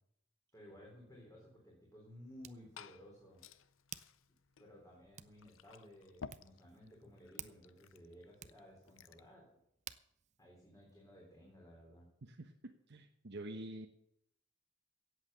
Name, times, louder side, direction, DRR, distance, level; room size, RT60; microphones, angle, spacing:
voice 1, 0.5-3.4 4.6-9.5 10.4-12.1, equal, 15° left, -2 dB, 4.0 m, -57 dB
Hands, 0.8-11.6, right 9 dB, 35° right, 0.7 m, -57 dB
Glass / Fill (with liquid), 2.3-9.3, left 5 dB, 70° left, 0.7 m, -57 dB
voice 2, 12.2-13.9, right 1 dB, 60° right, 3 dB, 1.1 m, -47 dB
16.0 x 8.3 x 6.8 m, 0.76 s
head